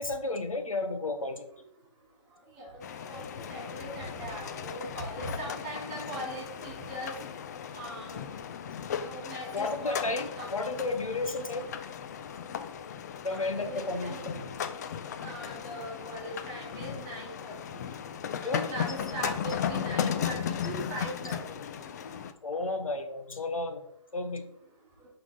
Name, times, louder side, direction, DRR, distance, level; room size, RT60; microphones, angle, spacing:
voice 1, 0.0-1.5 9.5-11.6 13.2-14.4 18.4-18.7 22.4-23.8 24.1-24.5, left 2 dB, 90° left, 7 dB, 1.2 m, -32 dB
voice 2, 2.5-7.1 7.7-8.2 9.0-10.7 13.3-14.4 15.2-17.8 18.4-21.4, right 1 dB, 25° right, -2 dB, 2.7 m, -40 dB
sound 1, 2.8-22.3, left 8 dB, 30° left, 0.4 m, -36 dB
9.8 x 3.9 x 3.7 m, 0.74 s
hypercardioid pair, 145°, 17 cm